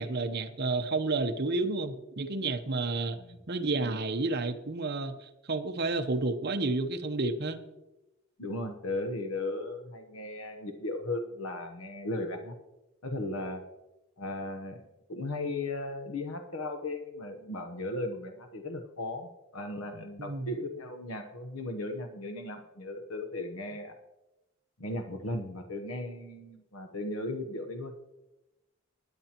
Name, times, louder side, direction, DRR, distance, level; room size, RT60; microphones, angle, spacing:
voice 1, 0.0-3.2 3.5-7.6 20.2-20.5, right 3 dB, 50° right, 7 dB, 0.8 m, -31 dB
voice 2, 8.4-12.6 13.0-13.6 14.2-14.8 15.1-24.0 24.8-27.9, left 2 dB, 85° left, 6 dB, 1.0 m, -36 dB
21.0 x 8.9 x 2.9 m, 0.99 s
head